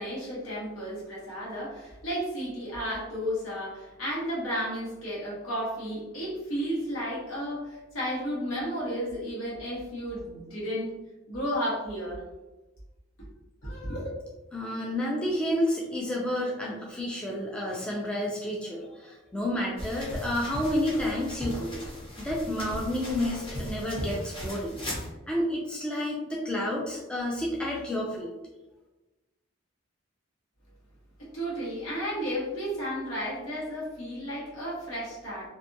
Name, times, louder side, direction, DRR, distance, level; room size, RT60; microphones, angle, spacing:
voice 1, 0.0-10.9 11.3-12.2 13.6-14.1 31.2-35.5, equal, 80° left, -6 dB, 1.2 m, -33 dB
voice 2, 14.5-21.9 22.2-24.8 25.3-28.3, left 1 dB, 5° left, -4 dB, 0.3 m, -30 dB
sound 1, 19.8-25.1, equal, 25° left, 0.8 m, -37 dB
2.6 x 2.3 x 2.6 m, 1.1 s
head